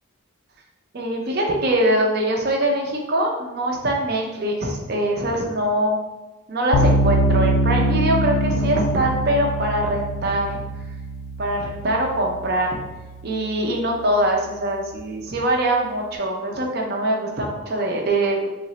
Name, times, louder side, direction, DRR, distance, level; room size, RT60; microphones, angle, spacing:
voice 1, 0.9-6.0 6.5-10.6 11.4-12.8 13.2-18.5, right 1 dB, 50° right, 0 dB, 0.5 m, -23 dB
sound 1, 6.7-13.8, right 1 dB, 75° left, 0.3 m, -23 dB
3.2 x 2.1 x 3.8 m, 1.1 s
head